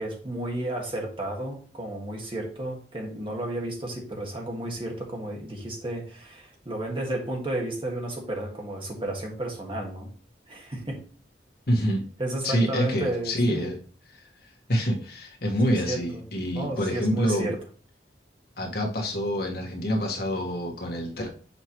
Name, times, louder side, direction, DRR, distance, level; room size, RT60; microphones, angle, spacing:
voice 1, 0.0-10.1 10.5-11.0 12.2-13.7 15.7-16.2 16.5-17.6, right 1 dB, 30° right, 0 dB, 1.6 m, -32 dB
voice 2, 11.7-12.0 12.4-13.7 14.7-17.5 18.6-21.3, equal, 60° left, 1 dB, 1.5 m, -26 dB
6.9 x 4.6 x 3.0 m, 0.41 s
head